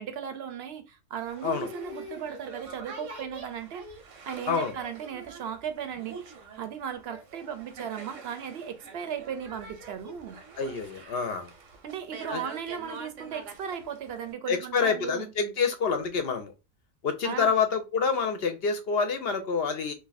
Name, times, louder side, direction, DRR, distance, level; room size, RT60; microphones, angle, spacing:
voice 1, 0.0-3.9 4.3-10.4 11.8-15.3 17.2-17.5, right 8 dB, 65° right, 0.8 m, -36 dB
Boat Water vehicle, 1.2-14.3, right 3 dB, 85° right, 1.1 m, -45 dB
voice 2, 10.6-11.5 12.3-12.4 14.5-16.5 17.0-19.9, left 5 dB, 65° left, 0.7 m, -27 dB
2.7 x 2.5 x 3.9 m
omnidirectional pair, 1.3 m